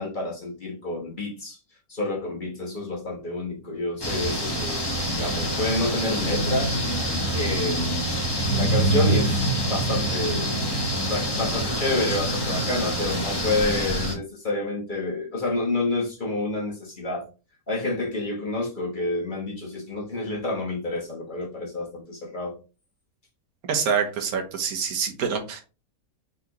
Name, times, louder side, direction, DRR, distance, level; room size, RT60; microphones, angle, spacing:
voice 1, 0.0-1.6 1.9-6.8 7.3-8.0 8.5-17.3 17.7-22.5, left 2 dB, 35° left, 1.3 m, -29 dB
sound 1, 4.0-14.2, right 1 dB, 20° left, 0.9 m, -25 dB
voice 2, 23.7-25.6, right 6 dB, 80° right, 1.4 m, -26 dB
4.2 x 4.0 x 2.9 m
omnidirectional pair, 1.5 m